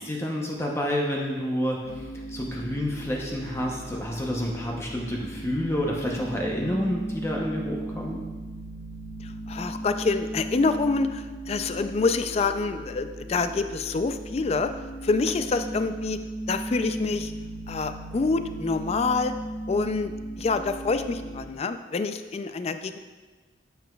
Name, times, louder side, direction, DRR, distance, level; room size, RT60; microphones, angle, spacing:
voice 1, 0.0-8.2, equal, 15° left, -2 dB, 0.7 m, -29 dB
sound 1, 1.8-21.5, right 1 dB, 15° right, 1.6 m, -37 dB
voice 2, 9.2-14.7 15.0-16.2 16.5-17.3 17.7-19.3 19.7-20.1 20.4-23.0, left 4 dB, 35° left, 10 dB, 0.3 m, -26 dB
9.2 x 7.0 x 2.3 m, 1.3 s
head